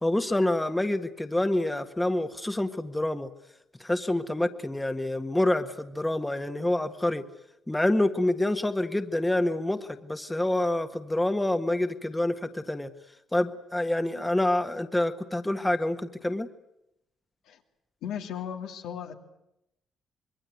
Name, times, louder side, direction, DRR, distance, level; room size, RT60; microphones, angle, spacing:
voice 1, 0.0-3.3 3.8-7.2 7.7-12.9 13.3-16.5, left 1 dB, 10° left, 8 dB, 1.6 m, -27 dB
voice 2, 18.0-19.2, left 8 dB, 85° left, 3 dB, 2.9 m, -36 dB
26.0 x 22.0 x 9.3 m, 0.84 s
cardioid pair, 90°, 0 cm